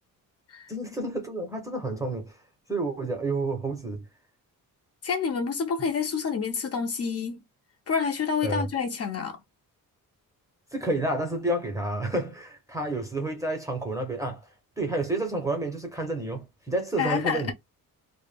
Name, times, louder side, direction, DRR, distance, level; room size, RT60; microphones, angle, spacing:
voice 1, 0.7-2.4 2.7-4.0 8.4-8.7 10.7-14.5 14.8-17.5, right 2 dB, 10° right, 0.6 m, -30 dB
voice 2, 5.0-7.4 7.9-9.4 17.0-17.5, left 6 dB, 40° left, 0.5 m, -28 dB
2.1 x 2.0 x 3.2 m
cardioid pair, 150°, 36 cm